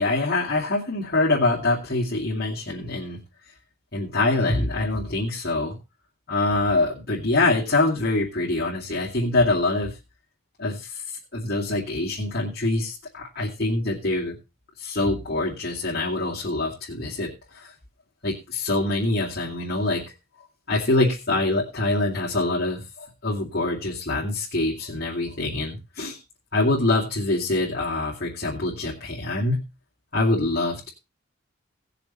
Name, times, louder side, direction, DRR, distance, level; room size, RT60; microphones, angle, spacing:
voice 1, 0.0-3.2 3.9-5.8 6.3-10.0 10.6-14.4 14.8-17.7 18.2-20.0 20.7-26.2 26.5-29.6 30.1-30.9, left 2 dB, 50° left, -4 dB, 2.5 m, -25 dB
18.0 x 6.9 x 4.2 m, 0.29 s
head